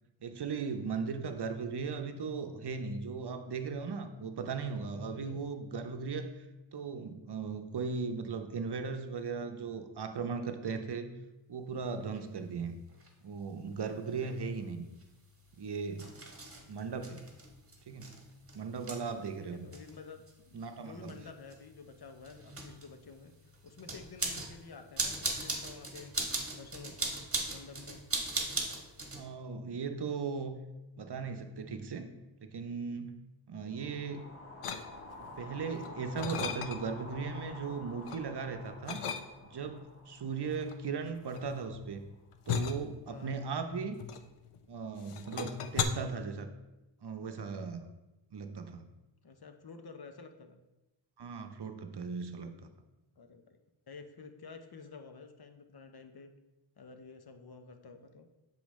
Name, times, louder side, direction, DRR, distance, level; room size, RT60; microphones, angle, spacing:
voice 1, 0.2-6.4 6.7-11.1 11.5-12.8 13.2-14.9 15.6-16.1 16.7-17.3 17.9-18.1 18.5-19.7 20.5-21.2 29.1-30.6 31.0-32.1 32.4-33.2 33.5-34.3 35.1-39.0 39.4-42.0 42.5-44.0 44.7-46.5 47.0-47.9 48.3-48.9 51.2-52.7, right 5 dB, 55° right, 7 dB, 0.7 m, -37 dB
voice 2, 5.1-5.4 14.0-14.6 19.4-23.3 23.6-26.1 26.5-27.2 27.5-28.0 43.1-43.4 49.2-50.6 53.2-53.6 53.9-56.3 56.8-58.3, left 4 dB, 50° left, 6 dB, 0.7 m, -51 dB
sound 1, 12.2-12.3 12.9-13.1 14.1-29.2, right 2 dB, 25° right, 1.2 m, -40 dB
sound 2, 33.7-41.9, left 2 dB, 25° left, 0.9 m, -50 dB
sound 3, 34.6-35.3 35.7-37.1 37.5-38.3 38.9-39.7 40.5-44.7 45.0-45.8, left 7 dB, 85° left, 0.6 m, -37 dB
7.0 x 4.9 x 3.1 m, 1.0 s
wide cardioid pair, 55°, 50 cm